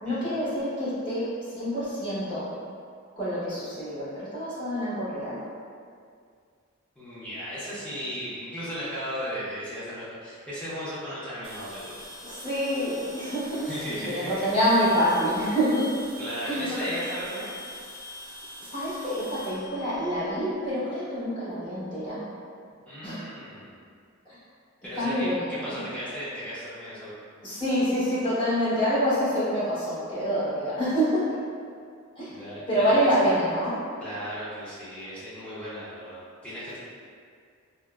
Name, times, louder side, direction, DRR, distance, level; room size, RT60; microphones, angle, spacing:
voice 1, 0.0-2.5 3.1-5.4 12.3-15.9 16.4-16.7 18.7-22.2 23.0-23.2 25.0-25.8 27.4-31.4 32.2-32.3 32.7-33.8, equal, 25° left, -13 dB, 1.1 m, -26 dB
voice 2, 7.0-12.0 13.7-14.5 16.2-17.5 22.9-23.8 24.8-27.1 32.3-33.1 34.0-36.8, equal, 5° left, -11 dB, 0.6 m, -36 dB
sound 1, 11.4-20.7, equal, 60° right, 0.6 m, -43 dB
3.4 x 2.0 x 2.3 m, 2.2 s
head